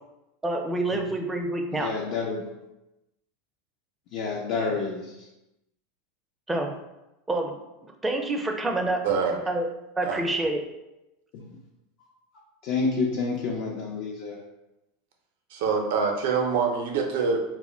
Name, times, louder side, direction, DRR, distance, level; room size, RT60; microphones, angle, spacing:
voice 1, 0.4-1.9 6.5-6.7 7.3-7.5 7.8-9.0 9.5-9.7 10.0-10.6, right 2 dB, 10° right, 2 dB, 0.4 m, -27 dB
voice 2, 1.8-2.4 4.1-5.1 11.5-11.6 12.6-14.4, left 4 dB, 55° left, -2 dB, 0.4 m, -28 dB
voice 3, 9.0-9.4 10.0-10.2 15.5-17.4, right 5 dB, 75° right, 3 dB, 0.4 m, -25 dB
2.1 x 2.0 x 3.7 m, 0.94 s
supercardioid pair, 115°, 0 cm